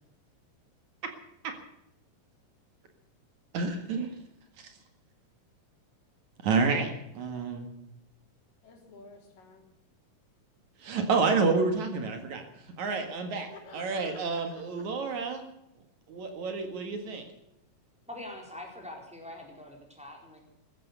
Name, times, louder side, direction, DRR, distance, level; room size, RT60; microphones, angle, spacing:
voice 1, 3.5-4.1 6.4-6.9 7.1-7.7 10.8-12.4 12.8-13.5 13.7-15.4 16.1-17.2, right 4 dB, 60° right, 5 dB, 3.1 m, -29 dB
voice 2, 8.6-9.6 13.5-14.6, left 4 dB, 80° left, 2 dB, 5.1 m, -50 dB
voice 3, 18.1-20.4, left 1 dB, ahead, 0 dB, 3.9 m, -44 dB
15.0 x 14.0 x 6.8 m, 0.84 s
omnidirectional pair, 3.8 m